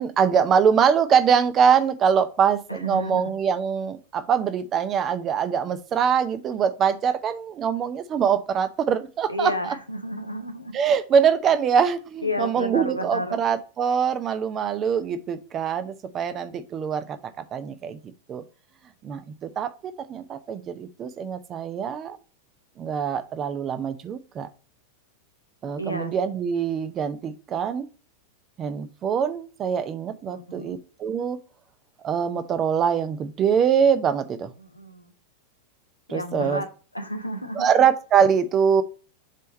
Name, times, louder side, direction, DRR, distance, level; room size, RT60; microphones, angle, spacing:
voice 1, 0.0-9.7 10.7-17.2 17.5-18.0 18.3-18.4 19.0-22.2 22.8-24.5 25.6-27.9 28.6-31.4 32.0-34.5 36.1-36.6 37.5-38.8, right 7 dB, 30° right, 0.7 m, -23 dB
voice 2, 2.7-3.3 9.3-10.8 12.2-13.4 25.8-26.1 30.3-30.8 34.6-35.1 36.1-36.7 36.9-37.7, equal, 85° left, 1.0 m, -31 dB
7.5 x 3.5 x 4.1 m
figure-of-eight pair, 90°, 0 cm